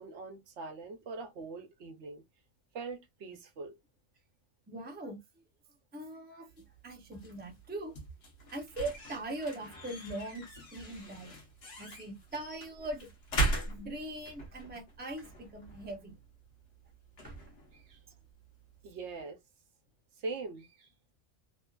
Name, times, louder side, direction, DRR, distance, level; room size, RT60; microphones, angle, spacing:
voice 1, 0.0-2.2 2.7-3.7 17.9-18.0 18.8-19.4 20.2-20.9, right 3 dB, 70° right, 1.0 m, -42 dB
voice 2, 4.7-5.2 5.9-6.5 6.8-7.9 8.5-11.4 11.8-13.1 13.7-16.2 17.2-17.4, right 2 dB, 10° right, 0.6 m, -41 dB
sound 1, 6.5-19.2, right 2 dB, 60° left, 1.1 m, -40 dB
3.0 x 2.4 x 2.2 m
omnidirectional pair, 1.2 m